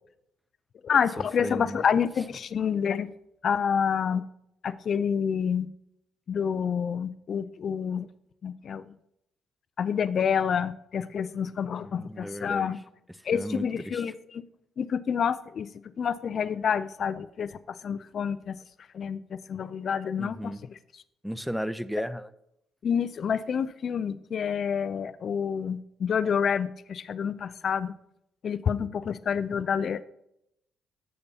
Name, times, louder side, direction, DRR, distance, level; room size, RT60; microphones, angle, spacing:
voice 1, 0.8-3.1 3.4-4.2 4.6-5.7 6.3-8.1 8.4-8.8 9.8-12.8 13.2-14.4 14.8-15.7 16.0-18.6 18.9-20.5 22.8-27.9 28.4-30.0, left 7 dB, 55° left, 15 dB, 0.4 m, -28 dB
voice 2, 1.4-1.8 11.8-12.7 13.3-14.1 20.2-20.6 21.2-22.3, equal, ahead, 14 dB, 0.5 m, -35 dB
16.0 x 6.8 x 2.8 m, 0.80 s
cardioid pair, 80°, 0 cm